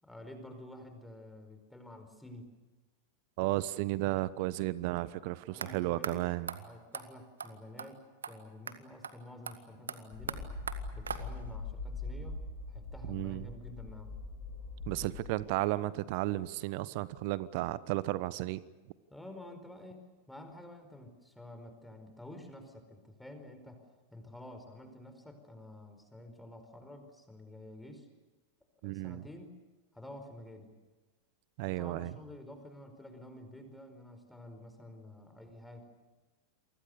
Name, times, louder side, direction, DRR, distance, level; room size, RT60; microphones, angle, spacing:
voice 1, 0.0-2.5 5.5-6.3 6.6-10.4 10.9-14.2 19.1-28.1 28.8-29.5 29.9-30.7 31.6-35.8, left 1 dB, 5° left, 4.8 m, -50 dB
voice 2, 3.4-6.6 13.1-13.5 14.9-18.6 28.8-29.2 31.6-32.1, right 17 dB, 45° right, 1.1 m, -33 dB
sound 1, 5.6-5.7 6.0-6.1 6.5-6.6 6.9-7.1 7.4-7.5 7.8-7.9 8.2-8.3 8.7-8.8 9.0-9.1 9.5-11.6, right 6 dB, 70° right, 1.9 m, -41 dB
sound 2, 10.1-15.5, left 3 dB, 50° left, 7.7 m, -42 dB
29.0 x 24.5 x 6.8 m
figure-of-eight pair, 90°, 0 cm